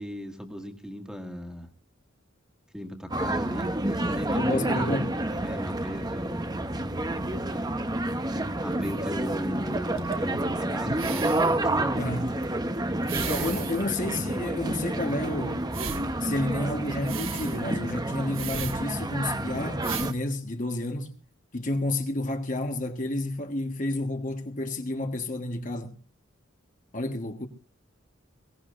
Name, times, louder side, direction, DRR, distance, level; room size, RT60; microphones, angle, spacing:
voice 1, 0.0-1.7 2.7-5.1 5.4-6.7 8.6-12.4, equal, 5° right, 1.9 m, -37 dB
sound 1, 3.1-20.1, right 1 dB, 20° right, 1.0 m, -29 dB
voice 2, 4.3-5.1 12.0-12.3 13.3-15.6 16.2-21.1 21.5-26.0 26.9-27.5, left 2 dB, 40° left, 1.5 m, -30 dB
sound 2, 8.8-8.9 10.0-10.4 10.9-11.6 12.4-12.5 13.1-13.8 14.1-14.2 15.7-16.1 17.1-17.6 18.3-18.8 19.4-19.5 19.7-20.2 21.1-21.2, right 7 dB, 80° right, 2.6 m, -36 dB
22.5 x 17.5 x 2.5 m
head